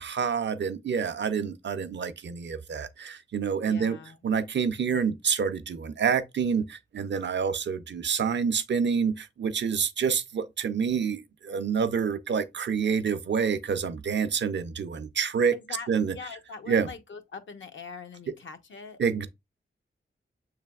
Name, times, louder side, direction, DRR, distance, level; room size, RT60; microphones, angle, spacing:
voice 1, 0.0-4.0 4.2-6.7 6.9-11.2 11.5-16.1 16.7-16.9 19.0-19.3, right 6 dB, 60° right, 0.5 m, -27 dB
voice 2, 3.6-4.2 15.5-19.0, left 5 dB, 65° left, 0.7 m, -42 dB
6.7 x 3.3 x 2.3 m
wide cardioid pair, 110°, 21 cm